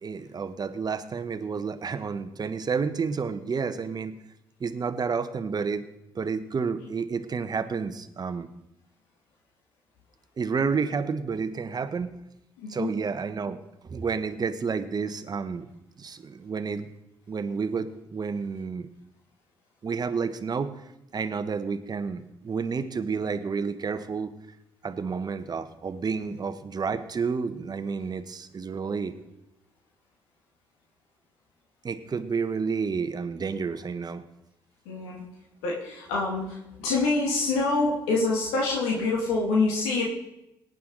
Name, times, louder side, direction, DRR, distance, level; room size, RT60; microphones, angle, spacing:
voice 1, 0.0-4.1 4.6-5.8 6.1-8.5 10.4-12.1 12.7-13.6 13.9-15.6 16.0-16.9 17.3-18.9 19.8-20.7 21.1-24.3 24.8-29.1 31.8-34.2, right 5 dB, 45° right, 11 dB, 1.1 m, -30 dB
voice 2, 12.6-12.9 26.3-26.4 34.9-35.2 35.6-36.5 36.8-40.0, left 3 dB, 90° left, -2 dB, 2.1 m, -26 dB
18.0 x 9.2 x 3.9 m, 0.89 s
supercardioid pair, 55°, 10 cm